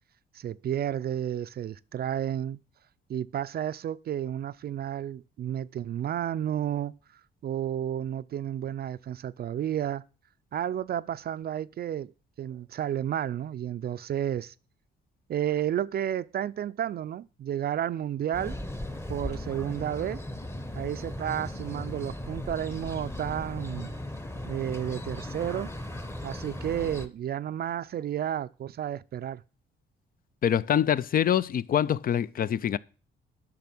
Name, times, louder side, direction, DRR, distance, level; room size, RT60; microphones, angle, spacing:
voice 1, 0.3-2.6 3.1-7.0 7.4-10.0 10.5-12.1 12.4-14.5 15.3-18.6 19.1-20.2 20.7-23.9 24.4-25.7 26.2-29.4, right 10 dB, 50° right, 0.4 m, -31 dB
sound 1, 18.3-27.1, left 1 dB, 10° left, 1.1 m, -37 dB
voice 2, 30.4-32.8, left 9 dB, 45° left, 0.5 m, -25 dB
10.5 x 6.1 x 6.0 m
cardioid pair, 90°, 20 cm